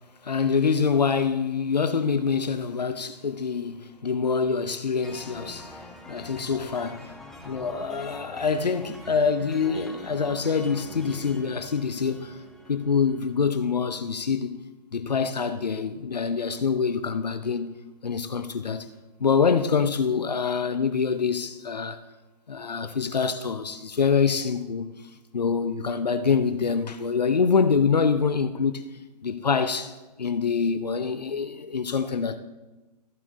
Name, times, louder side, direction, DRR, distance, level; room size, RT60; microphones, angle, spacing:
voice 1, 0.2-7.1 7.4-12.4 12.7-14.6 14.9-17.8 18.0-18.9 19.2-22.0 22.5-24.9 25.3-28.8 29.2-32.4, left 5 dB, 80° left, 0.6 m, -25 dB
sound 1, 5.0-13.6, left 1 dB, ahead, 0.7 m, -44 dB
13.5 x 5.8 x 3.9 m
figure-of-eight pair, 120°, 21 cm